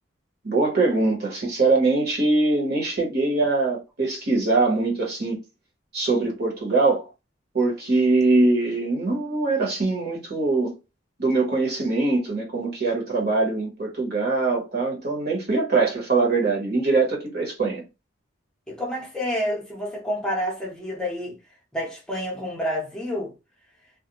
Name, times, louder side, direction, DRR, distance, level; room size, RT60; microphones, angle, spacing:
voice 1, 0.4-5.4 5.9-7.1 7.5-10.8 11.2-17.8, right 3 dB, 55° right, 1.1 m, -22 dB
voice 2, 18.7-21.4 21.7-23.3, equal, 5° left, 0.6 m, -29 dB
2.4 x 2.2 x 2.8 m
head